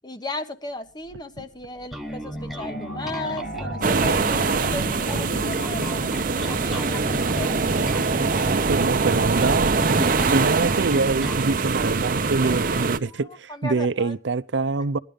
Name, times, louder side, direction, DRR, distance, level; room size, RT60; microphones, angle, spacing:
voice 1, 0.0-6.1 6.4-7.6 9.8-10.5 12.4-14.1, left 2 dB, 25° left, 1.2 m, -36 dB
sound 1, 0.9-10.5, right 1 dB, 75° left, 4.2 m, -40 dB
Bass guitar, 1.9-11.5, equal, ahead, 1.3 m, -35 dB
sound 2, 3.8-13.0, right 4 dB, 50° right, 0.8 m, -23 dB
voice 2, 8.7-9.7 10.3-15.0, right 3 dB, 85° right, 0.6 m, -25 dB
17.0 x 11.5 x 5.2 m
head